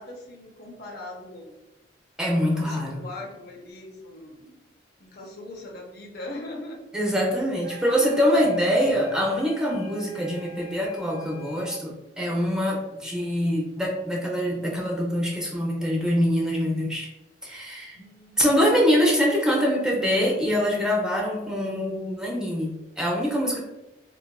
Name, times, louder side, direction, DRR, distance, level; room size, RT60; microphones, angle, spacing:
voice 1, 0.0-1.5 2.5-4.6 5.0-6.8 7.7-8.0 12.2-12.5 17.9-18.5, left 2 dB, 60° left, 0 dB, 0.6 m, -40 dB
voice 2, 2.2-3.0 6.9-17.1 17.4-18.0 18.4-23.6, equal, 5° right, -3 dB, 0.5 m, -24 dB
sound 1, 7.6-11.9, right 1 dB, 55° right, 0.6 m, -46 dB
3.7 x 2.3 x 2.2 m, 0.96 s
head